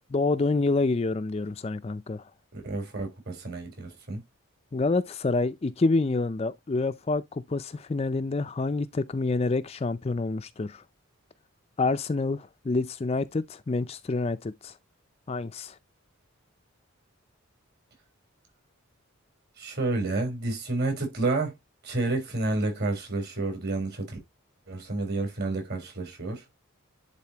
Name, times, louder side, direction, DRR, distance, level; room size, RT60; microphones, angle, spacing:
voice 1, 0.1-2.3 4.7-10.8 11.8-14.8 15.3-15.8, left 3 dB, 30° left, 0.4 m, -27 dB
voice 2, 2.5-4.2 19.6-21.5 21.8-24.2 24.7-26.4, right 2 dB, 50° right, 4.0 m, -30 dB
10.5 x 4.1 x 2.8 m
head